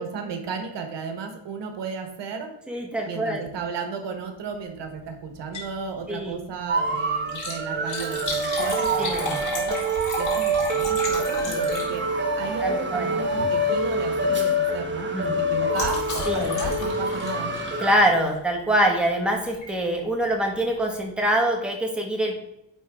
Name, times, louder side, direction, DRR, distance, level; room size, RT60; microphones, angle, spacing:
voice 1, 0.0-2.6 3.0-9.9 10.2-12.0 12.4-17.5, right 5 dB, 80° right, 6 dB, 1.3 m, -34 dB
voice 2, 2.7-3.4 6.1-6.3 9.0-9.4 11.4-11.6 12.6-13.1 15.1-15.3 16.3-16.6 17.8-22.4, right 1 dB, ahead, 0 dB, 1.5 m, -24 dB
Liquid, 5.4-5.8 6.1-6.2 7.2-12.3 13.3-13.6 13.9-14.1 14.4-18.5 19.5-19.7 20.3-20.4 20.5-20.6, left 2 dB, 45° left, 2.9 m, -33 dB
sound 1, 6.7-17.9, right 1 dB, 25° right, 1.0 m, -26 dB
10.0 x 3.8 x 3.6 m, 0.83 s
wide cardioid pair, 135°, 42 cm